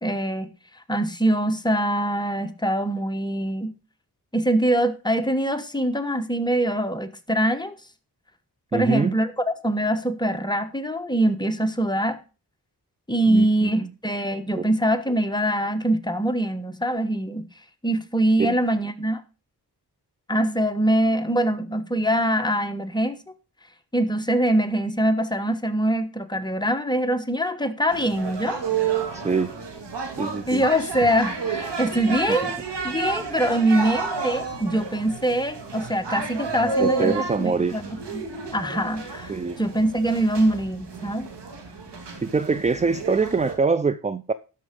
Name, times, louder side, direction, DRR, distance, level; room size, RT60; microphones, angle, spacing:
voice 1, 0.0-0.5 0.9-3.7 4.3-7.7 8.7-9.3 9.6-12.2 13.1-17.5 17.8-19.2 20.3-23.2 23.9-28.6 30.5-32.5 32.8-38.2 38.5-41.3, right 1 dB, 10° left, 1.2 m, -23 dB
voice 2, 8.7-9.1 13.3-13.9 14.5-14.7 18.4-18.6 29.1-29.6 30.2-30.6 32.3-32.4 36.8-37.8 39.3-39.6 42.2-44.3, right 4 dB, 20° right, 0.4 m, -24 dB
sound 1, 27.9-43.5, right 5 dB, 80° right, 2.4 m, -31 dB
12.5 x 5.6 x 5.2 m
wide cardioid pair, 70°, 41 cm